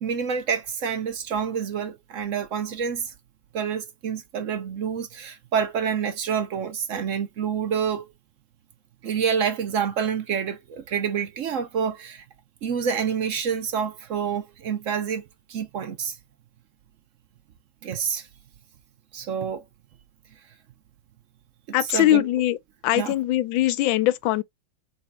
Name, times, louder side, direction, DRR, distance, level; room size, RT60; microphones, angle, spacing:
voice 1, 0.0-3.1 3.5-8.1 9.0-12.2 12.6-15.2 15.5-16.2 17.8-18.3 19.1-19.6 21.9-22.3 23.0-23.1, right 7 dB, 65° right, 0.8 m, -27 dB
voice 2, 21.7-22.6 22.8-24.4, left 14 dB, 80° left, 1.3 m, -21 dB
4.2 x 2.2 x 4.2 m
omnidirectional pair, 2.1 m